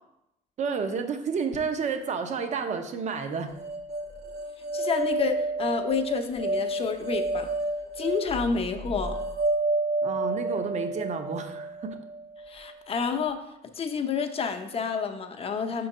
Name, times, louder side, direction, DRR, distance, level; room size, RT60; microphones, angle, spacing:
voice 1, 0.6-3.5 10.0-12.0, right 5 dB, 45° right, 7 dB, 0.7 m, -30 dB
sound 1, 3.6-12.7, right 2 dB, 65° right, 1.0 m, -30 dB
voice 2, 4.7-7.5 8.0-9.2 12.5-13.4 13.8-15.9, left 5 dB, 35° left, 6 dB, 0.6 m, -29 dB
5.0 x 3.9 x 5.4 m, 0.84 s
cardioid pair, 110°, 17 cm